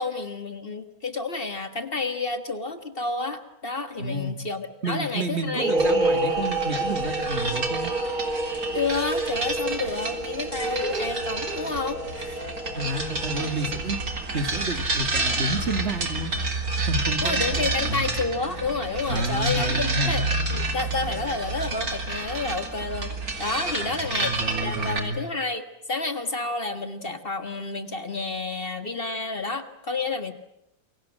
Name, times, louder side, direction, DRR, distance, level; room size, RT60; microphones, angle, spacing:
voice 1, 0.0-5.7 8.7-12.4 17.2-20.2 20.5-23.1 23.4-30.3, left 3 dB, 40° left, 10 dB, 1.8 m, -30 dB
voice 2, 4.0-4.4 4.8-7.9 12.7-14.0 14.3-16.3 16.9-18.1 19.1-20.2 23.8-25.2, right 1 dB, 45° right, 9 dB, 2.3 m, -30 dB
sound 1, 5.5-14.1, right 2 dB, 30° right, 3.9 m, -29 dB
sound 2, 5.8-25.0, right 3 dB, 75° right, 4.0 m, -30 dB
28.0 x 23.5 x 7.5 m, 0.84 s
omnidirectional pair, 1.6 m